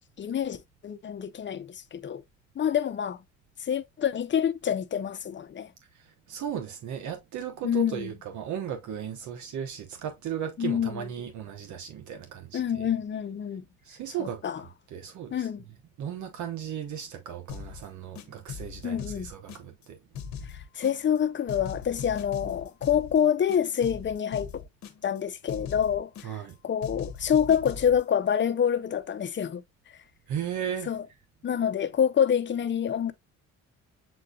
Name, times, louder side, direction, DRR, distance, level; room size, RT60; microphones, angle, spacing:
voice 1, 0.2-2.2 2.6-3.2 3.6-5.7 7.6-8.1 10.6-11.1 12.5-13.6 14.2-14.6 15.3-15.6 18.8-19.3 20.4-24.6 25.0-30.0 30.9-31.0 31.4-33.1, left 8 dB, 40° left, 0.6 m, -27 dB
voice 2, 5.9-12.9 13.8-14.4 14.9-15.5 16.0-20.0 26.2-26.6 30.3-30.9, right 9 dB, 75° right, 0.8 m, -36 dB
sound 1, 17.5-17.8 18.1-19.9 20.1-21.2 21.5-23.2 23.5-25.2 25.5-26.5 26.8-28.0, left 7 dB, 65° left, 0.9 m, -40 dB
7.6 x 2.6 x 2.3 m
cardioid pair, 90°, 30 cm